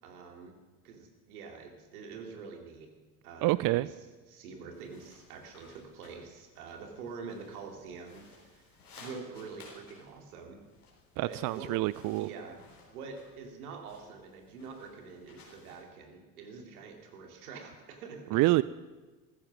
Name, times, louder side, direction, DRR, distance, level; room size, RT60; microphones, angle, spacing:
voice 1, 0.0-0.5 0.8-2.9 3.2-3.9 4.3-10.6 11.2-11.8 12.2-12.6 12.9-18.4, right 5 dB, 80° right, 3 dB, 2.6 m, -45 dB
voice 2, 3.4-3.9 11.2-12.3 18.3-18.6, right 19 dB, 45° right, 18 dB, 0.5 m, -27 dB
sound 1, 4.7-15.8, left 3 dB, 90° left, 4.0 m, -58 dB
14.5 x 14.5 x 6.1 m, 1.2 s
hypercardioid pair, 60°, 44 cm